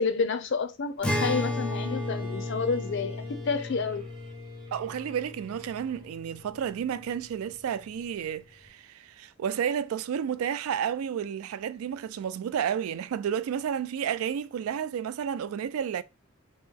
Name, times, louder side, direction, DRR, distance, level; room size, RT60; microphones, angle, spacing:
voice 1, 0.0-4.1, left 4 dB, 55° left, 0.5 m, -29 dB
Acoustic guitar, 1.0-6.5, left 1 dB, 5° left, 0.5 m, -34 dB
Bowed string instrument, 1.4-6.4, left 2 dB, 25° right, 0.8 m, -51 dB
voice 2, 4.7-16.0, right 8 dB, 85° right, 0.3 m, -31 dB
3.0 x 2.9 x 3.6 m
head